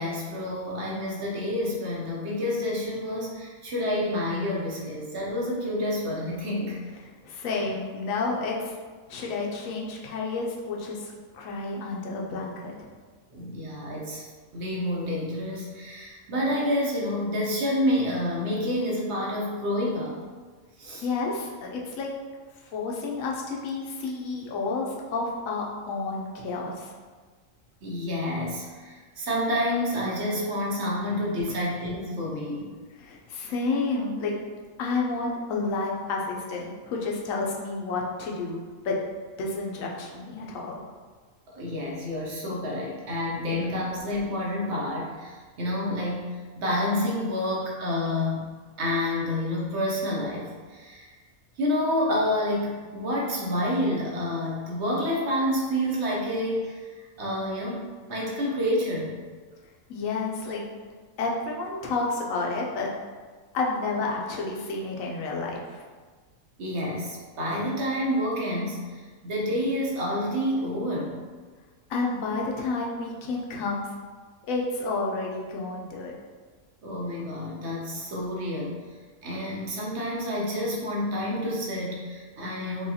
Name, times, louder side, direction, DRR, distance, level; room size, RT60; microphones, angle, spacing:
voice 1, 0.0-6.8 13.3-14.2 14.5-20.2 20.8-21.0 27.8-32.7 41.5-48.4 48.8-51.1 51.6-59.1 66.6-71.3 76.8-78.8 79.2-82.9, left 1 dB, 60° right, -3 dB, 0.9 m, -29 dB
voice 2, 7.2-8.7 9.1-12.9 21.0-22.1 22.7-26.9 31.5-31.6 33.0-34.3 34.8-38.6 38.8-39.0 39.4-40.8 59.9-60.6 61.2-62.9 63.5-65.8 71.9-73.9 74.5-76.1, left 3 dB, 80° left, -1 dB, 1.0 m, -30 dB
4.6 x 2.3 x 2.7 m, 1.5 s
omnidirectional pair, 1.4 m